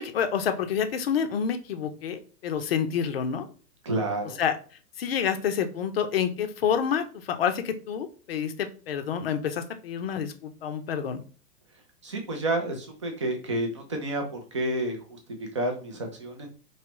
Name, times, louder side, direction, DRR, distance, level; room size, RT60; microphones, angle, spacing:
voice 1, 0.0-3.5 4.4-4.6 5.0-11.2, left 7 dB, 40° left, 8 dB, 0.6 m, -28 dB
voice 2, 3.8-4.4 12.0-16.5, right 1 dB, 20° right, 3 dB, 0.4 m, -30 dB
4.7 x 3.0 x 2.9 m, 0.38 s
hypercardioid pair, 145°, 49 cm